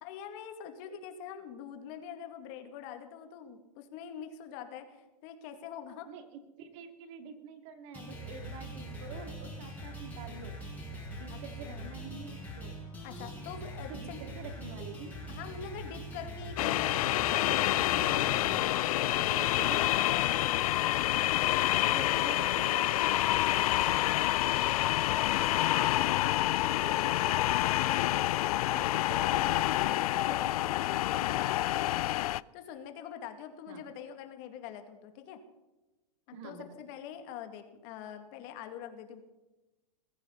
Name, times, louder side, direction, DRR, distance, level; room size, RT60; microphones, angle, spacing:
voice 1, 0.0-6.1 11.3-11.4 11.7-11.9 13.0-14.2 15.3-19.4 19.8-20.4 24.6-26.5 31.9-32.3 32.5-35.4 36.3-39.2, left 8 dB, 40° left, 6 dB, 2.4 m, -45 dB
voice 2, 6.1-10.6 11.1-12.8 13.9-15.1 19.2-19.8 21.9-23.9 24.4-24.5 26.6-27.7 28.3-31.5 33.7-33.8 36.3-36.6, right 5 dB, 50° right, 6 dB, 2.8 m, -47 dB
sound 1, 7.9-18.6, equal, 10° left, 6.0 m, -43 dB
Distant Passenger Jet Landing, 16.6-32.4, left 15 dB, 65° left, 0.5 m, -28 dB
21.5 x 15.5 x 4.1 m, 1.1 s
hypercardioid pair, 140°, 21 cm